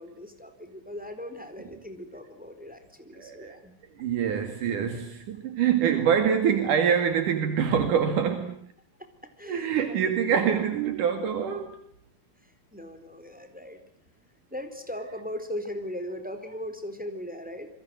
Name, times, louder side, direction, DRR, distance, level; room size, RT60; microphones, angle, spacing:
voice 1, 0.0-3.7 9.0-9.9 12.4-13.8 14.5-17.7, left 1 dB, ahead, 4.0 m, -39 dB
voice 2, 3.2-3.6 4.0-8.7 9.5-11.8, right 8 dB, 75° right, 3.7 m, -25 dB
28.5 x 23.5 x 7.8 m
omnidirectional pair, 3.7 m